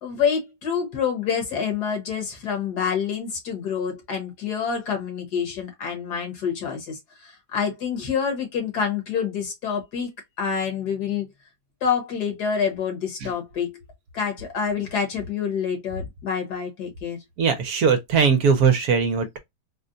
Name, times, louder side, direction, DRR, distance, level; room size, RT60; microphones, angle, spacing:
voice 1, 0.0-7.0 7.5-10.1 10.4-11.3 11.8-13.8 14.1-17.2, left 7 dB, 70° left, 1.8 m, -27 dB
voice 2, 17.4-19.4, right 6 dB, 65° right, 1.1 m, -20 dB
4.2 x 2.1 x 2.5 m
omnidirectional pair, 1.8 m